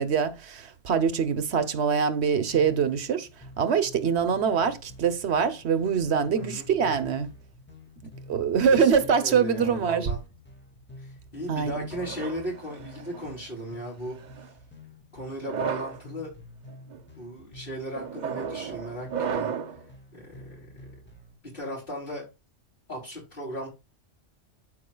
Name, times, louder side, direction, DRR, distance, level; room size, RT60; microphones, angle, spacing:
voice 1, 0.0-3.3 3.6-7.3 8.0-10.1 11.5-11.9, right 6 dB, 65° right, 1.1 m, -24 dB
sound 1, 2.5-21.3, left 1 dB, 10° left, 1.8 m, -49 dB
voice 2, 6.3-7.1 8.6-10.2 11.0-14.2 15.1-16.3 17.2-19.6 20.1-21.0 21.5-22.2 22.9-23.7, equal, 45° left, 3.4 m, -37 dB
sound 2, 11.9-13.3 14.1-14.5 15.3-16.0 16.7-17.0 17.9-19.8, right 7 dB, 50° right, 0.7 m, -34 dB
13.5 x 5.0 x 2.3 m
omnidirectional pair, 1.2 m